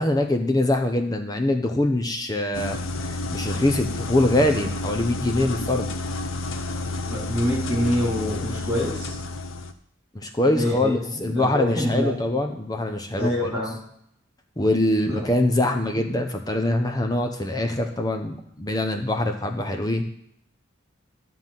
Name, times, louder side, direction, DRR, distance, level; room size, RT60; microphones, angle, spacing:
voice 1, 0.0-2.8 3.1-5.9 10.1-13.5 14.6-20.0, left 1 dB, 20° left, 5 dB, 0.7 m, -23 dB
sound 1, 2.5-9.7, left 2 dB, 85° left, 0.7 m, -30 dB
voice 2, 7.1-9.2 10.5-12.2 13.2-13.8 15.0-15.3 15.9-16.2, left 1 dB, 10° right, -6 dB, 3.6 m, -26 dB
11.5 x 4.0 x 7.4 m, 0.71 s
head